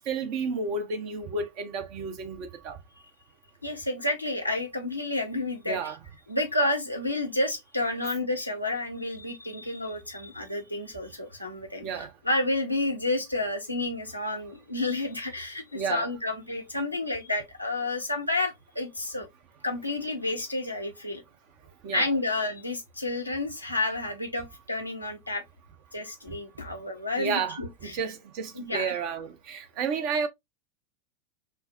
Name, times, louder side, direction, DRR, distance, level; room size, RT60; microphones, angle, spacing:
voice 1, 0.1-2.8 5.7-6.0 11.8-12.1 15.7-16.1 21.8-22.0 27.2-30.3, right 5 dB, 45° right, 0.8 m, -31 dB
voice 2, 3.6-5.9 6.3-19.3 19.6-21.2 21.9-25.4 25.9-28.0 28.5-28.9, left 2 dB, 85° left, 0.9 m, -30 dB
5.5 x 2.1 x 2.5 m
figure-of-eight pair, 85°, 0 cm